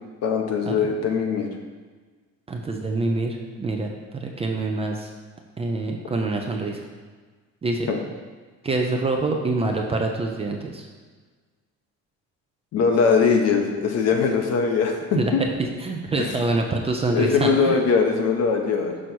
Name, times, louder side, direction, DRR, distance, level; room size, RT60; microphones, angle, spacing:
voice 1, 0.2-1.5 7.9-8.0 12.7-15.0 15.3-15.4 16.2-16.3 17.1-18.9, left 5 dB, 50° left, 2 dB, 1.0 m, -21 dB
voice 2, 2.5-5.1 5.6-6.8 7.6-7.9 8.6-10.9 15.2-15.5 15.8-17.8, right 2 dB, 20° right, 2 dB, 0.6 m, -26 dB
6.2 x 4.1 x 6.1 m, 1.4 s
cardioid pair, 155°, 31 cm